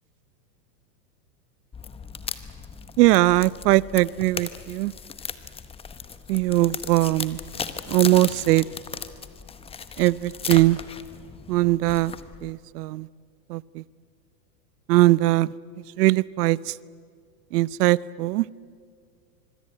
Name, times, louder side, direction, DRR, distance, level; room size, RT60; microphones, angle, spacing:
sound 1, 1.7-12.5, left 6 dB, 10° left, 0.9 m, -37 dB
voice 1, 3.0-4.9 6.3-7.4 7.9-8.6 10.0-10.8 11.5-12.1 12.4-13.1 13.5-13.8 14.9-16.7 17.5-18.5, right 17 dB, 65° right, 22 dB, 0.8 m, -21 dB
25.0 x 22.5 x 8.9 m, 2.1 s
supercardioid pair, 135°, 50 cm